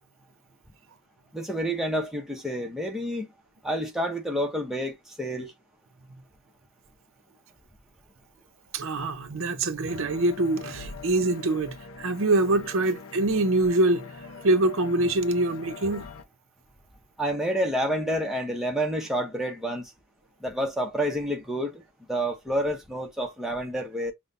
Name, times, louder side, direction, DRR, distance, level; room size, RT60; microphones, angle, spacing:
voice 1, 1.3-3.3 3.6-5.5 17.2-19.9 20.4-21.8 22.1-24.1, equal, ahead, 0.8 m, -29 dB
voice 2, 8.7-16.1, right 2 dB, 65° right, 0.7 m, -25 dB
sound 1, 9.9-16.2, left 4 dB, 70° left, 0.7 m, -43 dB
5.6 x 2.2 x 2.6 m
head